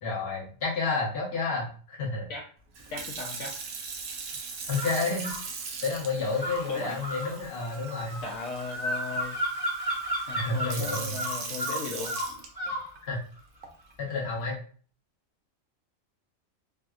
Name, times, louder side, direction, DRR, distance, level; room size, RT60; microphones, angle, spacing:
voice 1, 0.0-2.3 4.7-5.3 5.8-8.2 10.3-11.2 13.0-13.2 14.0-14.6, left 3 dB, 50° left, -4 dB, 1.2 m, -30 dB
Sink (filling or washing) / Fill (with liquid), 2.7-13.0 13.6-13.9, right 5 dB, 70° right, 0.9 m, -40 dB
voice 2, 2.9-3.5 6.7-7.0 8.2-9.4 10.3-12.2, left 4 dB, 75° left, -1 dB, 1.0 m, -36 dB
sound 1, 4.8-5.4 6.4-12.9, equal, 20° left, 0.7 m, -33 dB
3.4 x 2.1 x 2.3 m, 0.43 s
omnidirectional pair, 1.4 m